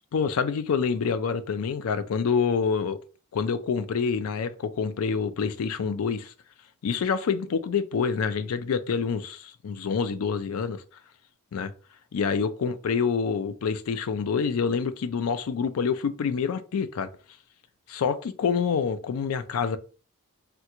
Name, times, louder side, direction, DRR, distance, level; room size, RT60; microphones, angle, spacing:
voice 1, 0.1-3.0 3.3-6.3 6.8-10.8 11.5-11.7 12.1-17.1 17.9-19.8, left 6 dB, 85° left, 0.4 m, -27 dB
3.6 x 2.2 x 2.9 m
head